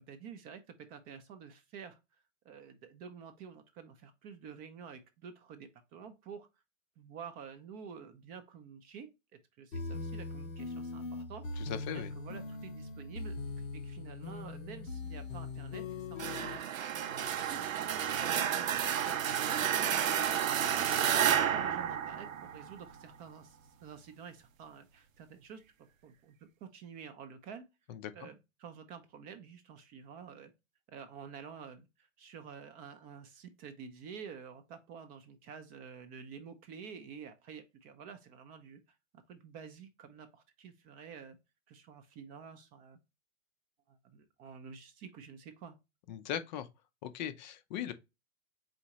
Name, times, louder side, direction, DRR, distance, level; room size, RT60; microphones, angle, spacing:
voice 1, 0.0-2.0 2.4-6.5 7.0-9.1 9.6-17.9 18.2-25.6 26.0-26.4 26.6-27.6 28.1-30.5 30.9-38.8 39.3-41.4 41.7-43.0 43.9-45.8, right 6 dB, 25° right, 0.5 m, -50 dB
sound 1, 9.7-16.6, left 3 dB, 85° left, 1.1 m, -41 dB
voice 2, 11.6-12.1 27.9-28.0 46.1-46.7 47.0-47.9, left 10 dB, 35° left, 0.5 m, -39 dB
sound 2, 16.2-22.9, right 9 dB, 85° right, 0.7 m, -31 dB
4.2 x 3.7 x 2.9 m
hypercardioid pair, 130°, 39 cm